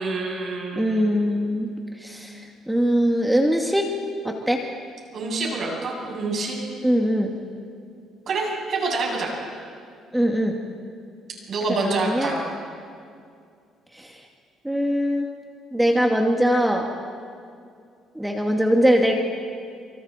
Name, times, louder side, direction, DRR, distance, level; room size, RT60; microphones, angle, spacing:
voice 1, 0.0-1.1 5.1-6.6 8.3-9.3 11.5-12.4, right 3 dB, 55° right, -1 dB, 7.7 m, -27 dB
voice 2, 0.8-1.7 2.0-3.9 4.2-4.6 6.8-7.3 10.1-10.6 11.8-12.4 13.9-14.1 14.6-15.3 15.7-16.9 18.2-19.2, equal, 5° right, 1 dB, 2.1 m, -21 dB
28.5 x 26.0 x 4.4 m, 2.3 s
cardioid pair, 95°, 0 cm